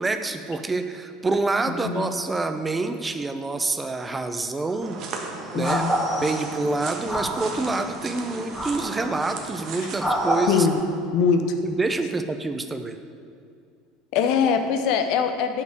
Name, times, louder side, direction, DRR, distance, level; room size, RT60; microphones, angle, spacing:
voice 1, 0.0-5.8 6.2-10.7 11.6-13.0, right 3 dB, 15° right, 8 dB, 0.8 m, -27 dB
sound 1, 4.7-4.9 5.6-6.6 7.1-7.7 8.5-9.1 10.0-10.5, equal, ahead, 2.0 m, -26 dB
sound 2, 4.8-10.8, right 4 dB, 45° right, 1.3 m, -37 dB
voice 2, 5.5-5.9 10.5-10.8 11.1-11.5 14.1-15.6, left 6 dB, 55° left, 7 dB, 0.9 m, -22 dB
8.6 x 6.3 x 8.3 m, 2.3 s
figure-of-eight pair, 70°, 0 cm